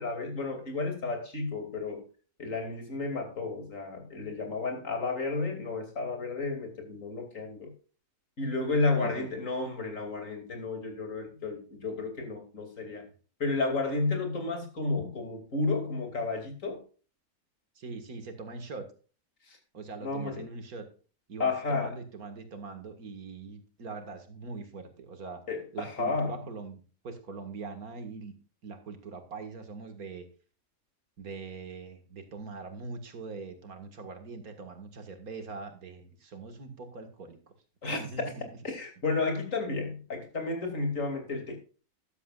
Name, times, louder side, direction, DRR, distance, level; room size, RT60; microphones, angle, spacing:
voice 1, 0.0-2.0 2.4-7.7 8.4-13.1 13.4-16.8 19.4-19.6 20.0-20.4 21.4-22.0 25.5-26.3 37.8-38.0 38.6-41.6, left 3 dB, 60° left, 3.1 m, -32 dB
voice 2, 9.0-9.3 17.8-18.9 19.7-20.9 21.3-25.5 25.7-28.3 28.6-30.3 31.2-37.5 37.9-38.4, right 4 dB, 90° right, 2.3 m, -42 dB
13.5 x 11.5 x 2.4 m
omnidirectional pair, 1.5 m